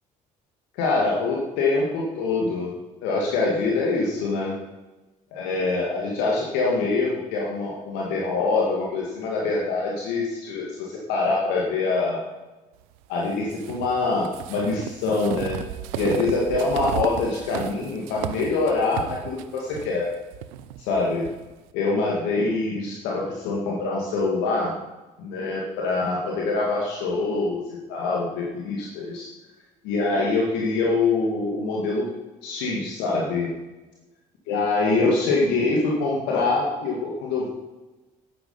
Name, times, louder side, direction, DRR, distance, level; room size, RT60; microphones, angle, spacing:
voice 1, 0.7-2.7 3.0-4.6 5.3-12.2 13.1-15.6 16.0-20.1 20.8-21.2 21.7-24.7 25.2-27.6 27.9-29.3 29.8-32.1 32.4-33.5 34.5-37.5, left 3 dB, 80° left, -3 dB, 2.0 m, -24 dB
sound 1, 13.5-21.4, right 12 dB, 80° right, 0.7 m, -34 dB
10.5 x 9.1 x 5.4 m, 1.1 s
hypercardioid pair, 55°, 18 cm